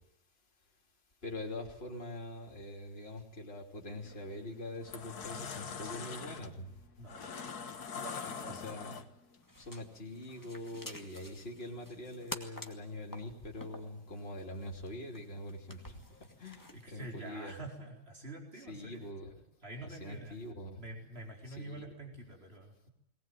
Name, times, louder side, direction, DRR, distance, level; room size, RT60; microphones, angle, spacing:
voice 1, 1.2-6.8 8.6-9.0 9.6-17.5 18.7-19.3 19.8-20.8 21.5-21.9, left 1 dB, 35° left, 0 dB, 3.4 m, -44 dB
sound 1, 4.0-4.2 4.7-9.4, left 6 dB, 75° left, 2.0 m, -43 dB
voice 2, 7.0-7.3 7.9-8.7 16.7-19.1 19.6-20.4 20.8-22.9, right 2 dB, 40° right, 1 dB, 4.5 m, -47 dB
sound 2, 9.4-16.9, left 1 dB, 10° left, 2.0 m, -50 dB
21.0 x 19.5 x 9.2 m, 0.80 s
omnidirectional pair, 1.7 m